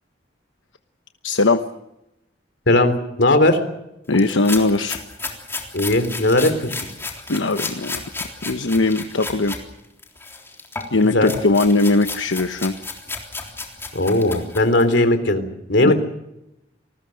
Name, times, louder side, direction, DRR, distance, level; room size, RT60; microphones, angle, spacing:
voice 1, 1.2-1.6 4.1-5.0 7.3-8.0 8.4-9.6 10.9-12.8 15.8-15.9, left 2 dB, 85° left, 8 dB, 1.1 m, -19 dB
voice 2, 2.7-3.6 5.7-6.8 11.0-11.3 13.9-15.9, left 1 dB, 65° left, 9 dB, 3.4 m, -18 dB
sound 1, 4.1-9.6 10.0-15.0, left 3 dB, 15° left, 3.6 m, -33 dB
28.0 x 20.0 x 6.5 m, 0.87 s
head